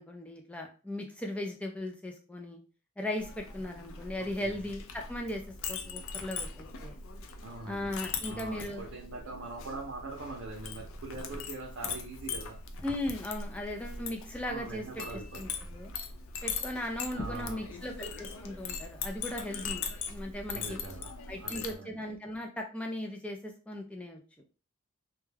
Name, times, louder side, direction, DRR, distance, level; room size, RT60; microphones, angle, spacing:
voice 1, 0.0-2.6 3.0-5.4 5.7-7.0 7.7-8.8 12.8-15.0 15.3-15.9 16.4-20.8 21.3-24.2, left 1 dB, 5° left, 1 dB, 0.4 m, -38 dB
Chink clink, 3.2-21.7, left 5 dB, 70° left, 0.4 m, -40 dB
voice 2, 4.2-4.5 7.4-8.0 8.2-12.6 14.4-15.6 17.1-17.9 20.5-22.0, right 3 dB, 70° right, -2 dB, 0.6 m, -43 dB
2.2 x 2.2 x 3.2 m, 0.35 s
head